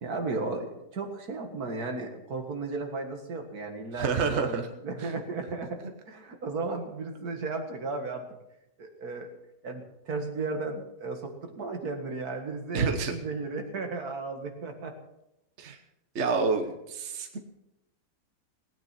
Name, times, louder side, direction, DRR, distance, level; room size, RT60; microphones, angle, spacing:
voice 1, 0.0-8.3 8.8-9.3 9.6-14.9, right 3 dB, 70° right, 4 dB, 2.3 m, -35 dB
voice 2, 4.0-4.7 5.0-5.1 12.7-13.1 15.6-15.8 16.1-17.4, right 5 dB, 45° right, 5 dB, 1.4 m, -28 dB
18.5 x 9.5 x 6.0 m, 0.88 s
omnidirectional pair, 1.7 m